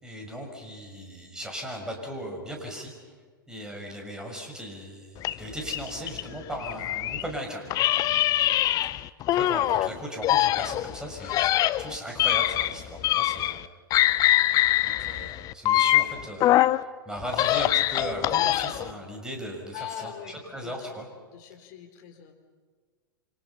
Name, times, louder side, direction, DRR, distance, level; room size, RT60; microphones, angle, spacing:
voice 1, 0.0-2.9 3.5-7.6 9.3-13.6 14.8-16.6 16.8-20.1 20.5-21.1, equal, 5° right, 1 dB, 6.4 m, -37 dB
sound 1, 5.2-7.3 7.7-9.9 10.2-13.7 13.9-16.8 17.2-18.9, left 14 dB, 30° left, 0.7 m, -24 dB
voice 2, 19.7-21.0 21.3-22.3, left 10 dB, 50° left, 4 dB, 4.1 m, -42 dB
29.5 x 25.5 x 5.9 m, 1.5 s
figure-of-eight pair, 100°, 12 cm